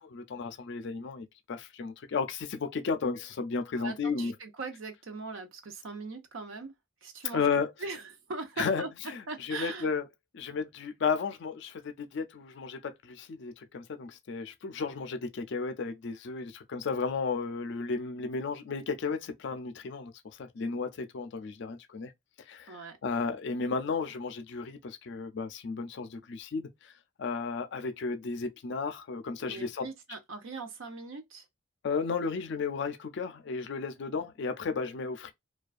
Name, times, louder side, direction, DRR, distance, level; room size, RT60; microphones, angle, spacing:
voice 1, 0.0-4.3 7.3-7.7 8.6-10.0 10.3-22.1 22.5-26.9 27.2-29.9 31.8-35.3, left 4 dB, 55° left, 0.4 m, -34 dB
voice 2, 3.8-6.7 7.0-7.4 7.8-8.9 9.3-9.9 22.7-23.0 29.5-31.4, right 3 dB, 65° right, 0.5 m, -40 dB
2.4 x 2.2 x 2.4 m
head